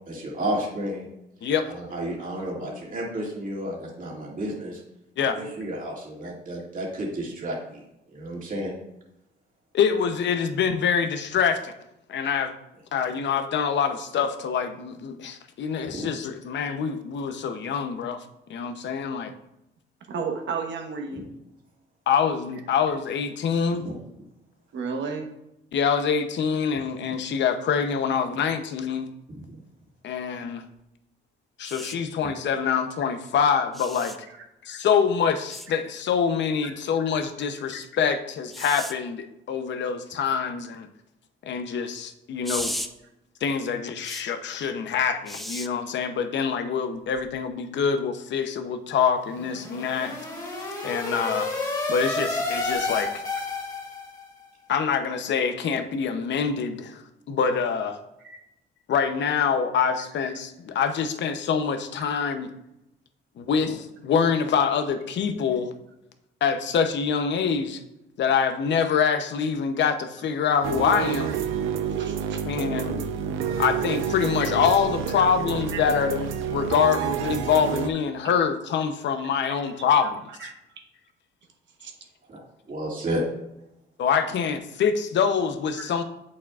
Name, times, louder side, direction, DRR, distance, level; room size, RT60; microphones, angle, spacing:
voice 1, 0.1-1.1 1.7-4.8 5.3-7.8 8.1-8.7 15.9-16.1 21.1-21.2 23.8-23.9 29.3-29.5 32.2-32.3 63.6-63.7 72.9-73.0 82.3-82.4 82.7-83.2, right 1 dB, 45° right, -3 dB, 2.2 m, -32 dB
voice 2, 9.7-11.7 12.1-12.5 12.9-18.2 18.5-19.3 22.1-23.9 25.7-29.1 30.0-30.7 31.6-34.3 34.6-40.9 41.4-42.7 43.4-50.2 50.8-51.5 51.9-53.1 54.7-57.0 57.3-58.0 58.9-62.5 63.4-65.7 66.4-67.8 68.2-71.3 72.4-73.0 73.6-80.3 84.0-86.0, left 6 dB, 65° left, 8 dB, 0.8 m, -25 dB
voice 3, 20.1-21.2 24.7-25.3 36.6-36.7 58.2-58.4 71.3-71.4 72.0-72.4 73.5-73.6 75.2-75.3 75.7-75.8 80.4-80.5 81.8-81.9 85.8-85.9, right 5 dB, 70° right, 3 dB, 1.2 m, -32 dB
sound 1, 31.6-32.0 33.7-34.2 35.5-35.7 38.5-38.9 42.4-42.9 44.0-44.2 45.3-45.7 47.2-47.3, equal, ahead, 0.5 m, -34 dB
sound 2, 49.2-54.2, left 2 dB, 20° left, 2.6 m, -30 dB
sound 3, 70.6-77.9, right 7 dB, 90° right, 0.6 m, -29 dB
8.3 x 6.4 x 2.4 m, 0.85 s
cardioid pair, 90°, 20 cm